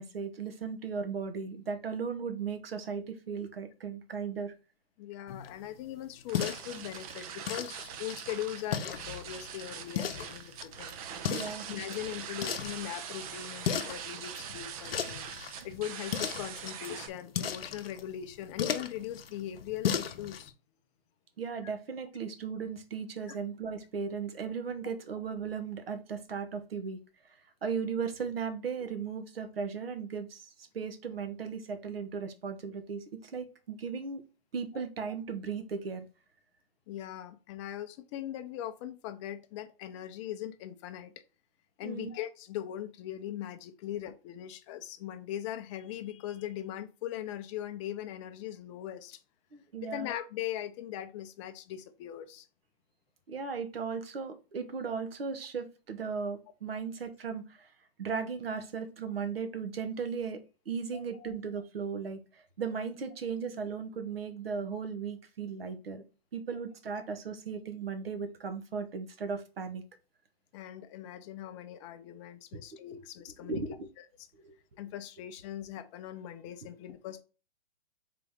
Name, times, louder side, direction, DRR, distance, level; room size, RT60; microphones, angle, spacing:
voice 1, 0.0-4.5 11.3-11.7 21.4-27.0 27.6-34.2 34.5-36.1 41.8-42.1 49.5-50.1 53.3-57.7 58.0-66.0 66.3-69.8 73.5-73.9 74.4-74.5, right 5 dB, 75° right, 1.1 m, -36 dB
voice 2, 5.0-11.0 11.7-15.3 15.6-20.5 23.3-23.4 36.9-41.1 41.8-49.2 49.8-52.5 60.9-61.3 70.5-73.6 74.8-77.2, left 11 dB, 30° left, 0.6 m, -40 dB
sound 1, 5.3-20.5, left 8 dB, 70° left, 0.8 m, -38 dB
sound 2, 6.3-17.1, right 8 dB, 40° right, 0.6 m, -43 dB
3.9 x 3.8 x 3.5 m
figure-of-eight pair, 120°, 30 cm